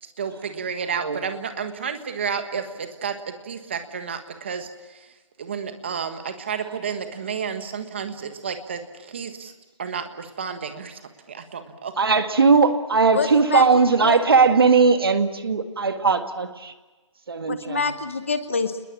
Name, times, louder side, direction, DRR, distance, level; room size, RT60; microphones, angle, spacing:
voice 1, 0.0-4.7 5.4-9.5 9.8-11.0 11.3-11.9, right 6 dB, 20° right, 8 dB, 1.5 m, -31 dB
voice 2, 12.0-16.7 17.3-17.8, right 4 dB, 45° right, 8 dB, 2.0 m, -19 dB
voice 3, 13.1-14.2 17.5-18.8, left 4 dB, 25° left, 10 dB, 0.9 m, -27 dB
29.0 x 21.5 x 7.3 m, 1.2 s
hypercardioid pair, 180°, 16 cm